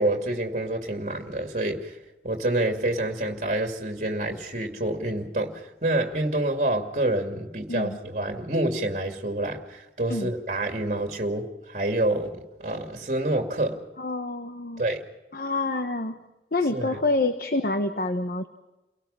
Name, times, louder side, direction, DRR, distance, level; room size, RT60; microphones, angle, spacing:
voice 1, 0.0-2.0 2.2-13.8 14.8-15.0 16.7-17.0, right 1 dB, 45° right, 4 dB, 2.4 m, -27 dB
voice 2, 14.0-14.8 15.3-16.2 16.5-18.5, left 2 dB, 55° left, 8 dB, 1.2 m, -27 dB
30.0 x 18.5 x 5.7 m, 1.1 s
head